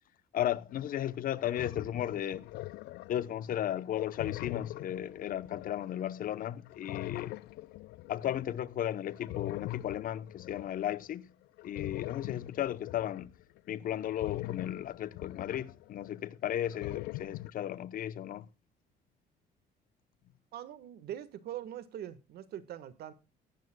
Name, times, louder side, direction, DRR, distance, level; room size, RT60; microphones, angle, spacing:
voice 1, 0.3-2.5 3.1-7.4 8.1-11.3 11.6-13.3 13.7-18.5, left 11 dB, 55° left, 0.8 m, -35 dB
sound 1, 0.8-0.9 1.3-3.3 3.7-6.4 6.7-8.4 9.1-10.9 11.6-16.3 16.5-17.5, left 18 dB, 80° left, 0.4 m, -42 dB
voice 2, 20.5-23.1, right 11 dB, 70° right, 1.4 m, -42 dB
18.0 x 10.5 x 2.2 m
cardioid pair, 110°, 17 cm